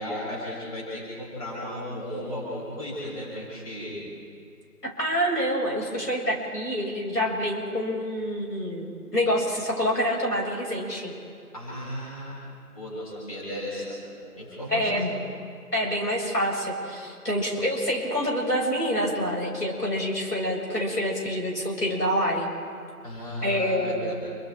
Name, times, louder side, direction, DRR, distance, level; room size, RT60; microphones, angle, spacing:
voice 1, 0.0-4.0 11.5-12.4 12.7-15.1 23.0-24.1, equal, 25° left, -6 dB, 7.5 m, -35 dB
voice 2, 5.0-11.1 14.7-15.1 15.7-22.5 23.4-24.1, equal, 90° left, -2 dB, 6.8 m, -27 dB
30.0 x 24.5 x 3.7 m, 2.3 s
figure-of-eight pair, 165°, 46 cm